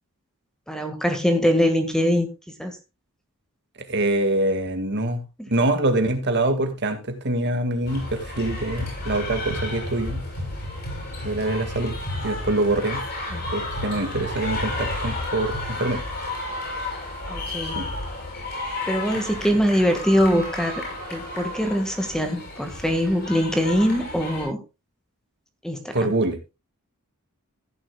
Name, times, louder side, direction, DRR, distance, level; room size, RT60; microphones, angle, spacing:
voice 1, 0.7-2.3 2.6-2.8 13.3-13.4 17.3-17.9 18.9-20.8 21.1-24.6 25.6-25.9, equal, 5° left, 6 dB, 1.7 m, -22 dB
voice 2, 3.8-5.2 5.5-10.2 11.2-13.0 13.5-16.0 17.6-17.9 25.9-26.4, right 2 dB, 50° right, 7 dB, 2.1 m, -25 dB
sound 1, 7.8-24.5, left 2 dB, 50° left, 7.6 m, -32 dB
15.5 x 10.5 x 2.3 m, 0.25 s
head